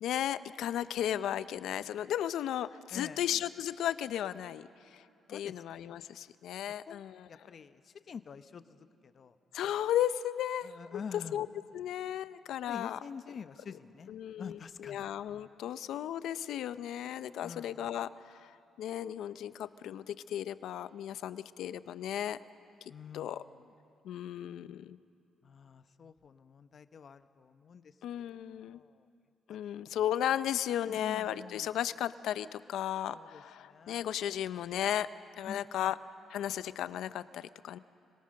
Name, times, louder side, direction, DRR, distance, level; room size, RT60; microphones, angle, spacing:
voice 1, 0.0-5.0 5.3-7.3 9.5-11.5 11.7-13.0 14.1-22.4 23.1-23.4 24.0-25.0 28.0-28.8 29.5-35.1 35.3-36.0 36.3-37.8, left 11 dB, 80° left, 14 dB, 0.6 m, -35 dB
voice 2, 2.9-3.2 5.3-5.5 6.9-8.8 9.0-9.3 10.6-11.4 12.7-14.1 14.4-15.1 17.4-17.9 22.9-23.5 25.4-27.9 28.2-28.4 28.7-29.0 29.5-29.8 30.9-31.6 33.1-34.1 35.5-35.9, left 6 dB, 50° left, 11 dB, 0.9 m, -47 dB
28.5 x 22.5 x 6.5 m, 2.7 s
cardioid pair, 90°, 0 cm